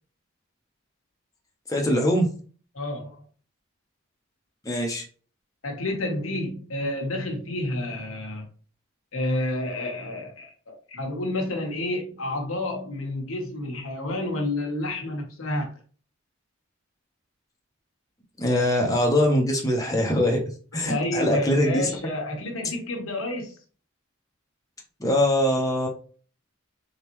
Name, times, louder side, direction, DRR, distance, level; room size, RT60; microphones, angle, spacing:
voice 1, 1.7-2.3 4.6-5.0 18.4-20.4 20.7-21.9 25.0-25.9, left 1 dB, 15° left, 0.9 m, -22 dB
voice 2, 2.7-3.2 5.6-8.4 9.1-15.7 20.7-23.5, left 1 dB, 90° left, 1.2 m, -30 dB
4.0 x 3.6 x 3.1 m
head